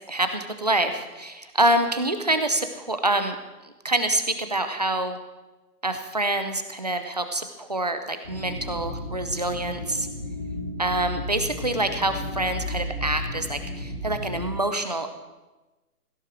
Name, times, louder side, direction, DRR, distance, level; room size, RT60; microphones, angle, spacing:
voice 1, 0.0-3.4 3.6-5.2 5.8-10.1 10.8-15.1, right 1 dB, 25° right, 8 dB, 0.8 m, -26 dB
sound 1, 8.2-14.5, left 1 dB, 35° left, 3.5 m, -33 dB
17.0 x 11.0 x 6.1 m, 1.1 s
figure-of-eight pair, 165°, 46 cm